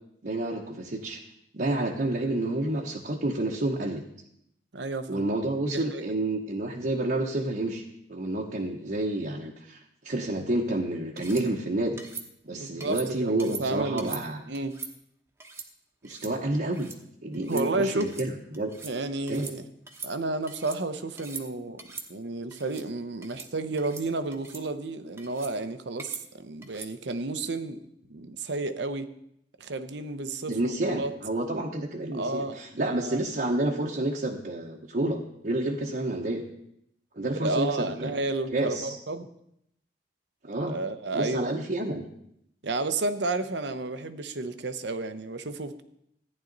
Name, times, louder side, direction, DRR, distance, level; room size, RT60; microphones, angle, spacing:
voice 1, 0.2-1.2 1.5-4.0 5.1-7.8 8.1-12.0 12.4-14.4 16.0-16.9 17.2-18.7 19.3-19.5 30.5-36.4 37.2-38.2 38.5-39.0 40.4-40.8 41.1-42.0, right 1 dB, 55° right, -2 dB, 1.0 m, -29 dB
voice 2, 4.7-5.2 5.6-6.0 12.5-14.2 14.5-14.8 17.5-18.1 18.8-19.7 20.0-21.8 22.1-27.8 28.1-29.1 29.6-31.1 32.1-33.2 37.4-39.3 40.7-41.5 42.6-45.8, right 2 dB, 85° right, 10 dB, 0.8 m, -32 dB
sound 1, 11.2-11.5 12.0-12.3 12.8-13.1 13.4-13.6 14.0-14.2 14.5-14.9 15.4-15.7 16.0-16.3 16.6-17.0 17.3-17.7 18.0-18.3 18.5-18.9 19.3-19.6 19.9-20.8 21.2-21.5 21.8-22.1 22.5-22.8 23.2-23.5 23.8-24.0 24.3-24.6 25.2-25.5 26.0-26.2 26.6-26.9, right 4 dB, 15° right, 1.0 m, -41 dB
14.0 x 10.0 x 4.0 m, 0.75 s
head